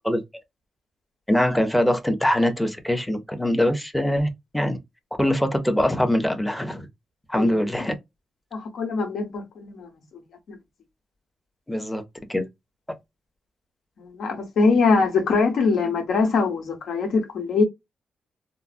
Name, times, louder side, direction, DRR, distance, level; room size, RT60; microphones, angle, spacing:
voice 1, 1.3-4.8 5.2-6.9 7.3-8.0 11.7-12.0 12.3-12.4, left 1 dB, 5° left, 0.6 m, -23 dB
voice 2, 7.3-7.9 8.5-9.9 10.5-10.6 14.0-17.6, left 4 dB, 80° left, 1.1 m, -23 dB
3.7 x 2.0 x 2.4 m
cardioid pair, 105°, 0 cm